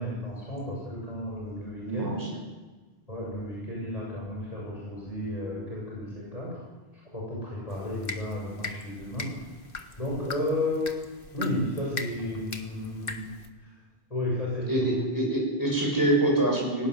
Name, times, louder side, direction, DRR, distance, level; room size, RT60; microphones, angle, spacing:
voice 1, 0.0-2.1 3.1-6.6 7.1-9.3 10.0-10.9 11.3-13.3 14.1-14.9, left 1 dB, 35° left, -5 dB, 7.2 m, -32 dB
voice 2, 1.8-2.4 14.7-16.9, right 1 dB, 20° right, -1 dB, 7.4 m, -25 dB
sound 1, 7.7-13.5, left 3 dB, 55° left, 1.7 m, -40 dB
19.0 x 18.0 x 9.7 m, 1.3 s
omnidirectional pair, 1.1 m